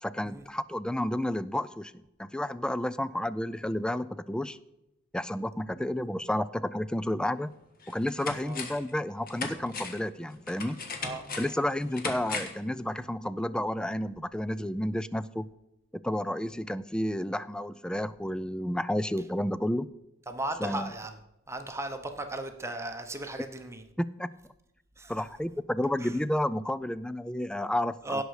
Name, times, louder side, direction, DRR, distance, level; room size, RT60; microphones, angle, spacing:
voice 1, 0.0-1.9 2.2-4.6 5.1-7.5 7.9-10.8 11.4-15.5 16.0-19.9 20.6-20.9 24.0-24.3 25.1-28.2, left 1 dB, 5° left, 16 dB, 0.3 m, -31 dB
sound 1, 7.3-7.4 7.8-8.9 9.3-12.7 13.0-13.1, left 4 dB, 45° left, 1.6 m, -38 dB
voice 2, 11.0-11.5 16.5-16.6 20.3-21.1 21.5-23.8 25.0-25.2 26.0-26.1 28.0-28.2, right 1 dB, 15° right, 6 dB, 0.9 m, -36 dB
17.0 x 6.4 x 4.8 m, 0.91 s
head